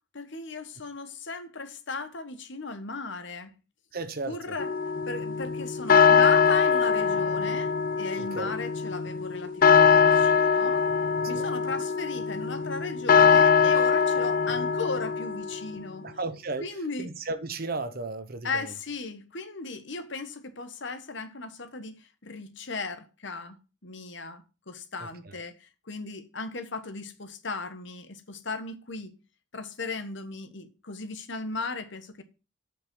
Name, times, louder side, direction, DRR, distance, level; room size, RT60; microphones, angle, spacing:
voice 1, 0.1-3.5 4.2-4.7 5.1-10.8 11.3-16.1 16.6-17.1 18.4-23.6 23.8-29.1 29.5-32.2, left 3 dB, 60° left, 1.3 m, -36 dB
voice 2, 3.9-4.6 8.2-8.5 11.3-11.5 16.0-18.7 25.0-25.4, right 3 dB, 50° right, 0.9 m, -35 dB
sound 1, 4.6-15.8, left 6 dB, 45° left, 0.5 m, -22 dB
8.0 x 5.4 x 6.1 m
head